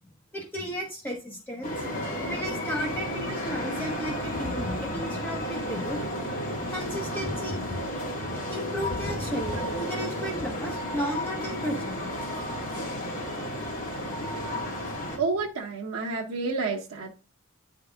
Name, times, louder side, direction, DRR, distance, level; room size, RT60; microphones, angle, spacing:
voice 1, 0.3-1.7 2.3-6.0 6.7-7.6 8.5-12.0, equal, 10° left, 1.2 m, -34 dB
sound 1, 1.6-15.2, left 1 dB, 40° left, 1.8 m, -33 dB
Thunder, 4.2-11.6 12.7-12.8, left 1 dB, 90° left, 1.6 m, -40 dB
voice 2, 15.2-17.1, right 4 dB, 85° right, 0.8 m, -29 dB
9.4 x 3.9 x 3.4 m
head